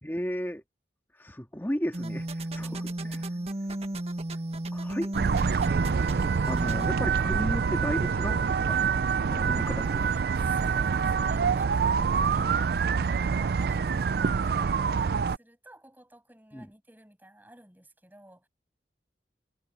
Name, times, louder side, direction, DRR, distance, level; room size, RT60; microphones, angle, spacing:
voice 1, 0.0-0.6 1.2-2.7 4.7-5.1 5.9-6.0 6.5-8.8 9.3-9.8 16.5-16.7, equal, 10° left, 1.9 m, -34 dB
sound 1, 1.9-6.9, right 1 dB, 35° right, 1.6 m, -34 dB
voice 2, 2.6-3.6 9.0-9.1 9.6-18.5, right 1 dB, 10° right, 7.3 m, -53 dB
sound 2, 5.1-15.4, right 6 dB, 60° right, 0.4 m, -26 dB
head